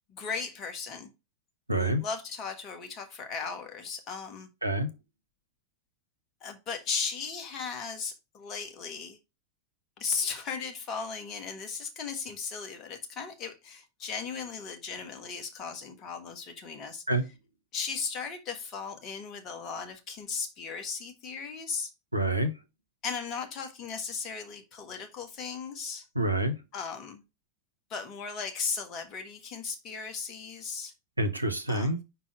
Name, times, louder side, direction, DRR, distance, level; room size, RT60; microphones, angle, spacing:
voice 1, 0.1-1.1 1.7-4.5 6.4-9.2 10.0-17.0 17.7-21.9 23.0-26.1 26.7-27.2 27.9-30.9 31.7-31.9, left 5 dB, 35° left, 1.6 m, -36 dB
voice 2, 1.7-2.0 4.6-4.9 17.1-17.2 22.1-22.5 26.1-26.5 31.2-32.0, right 1 dB, 85° right, 0.9 m, -27 dB
5.6 x 4.6 x 4.8 m
figure-of-eight pair, 90°, 0 cm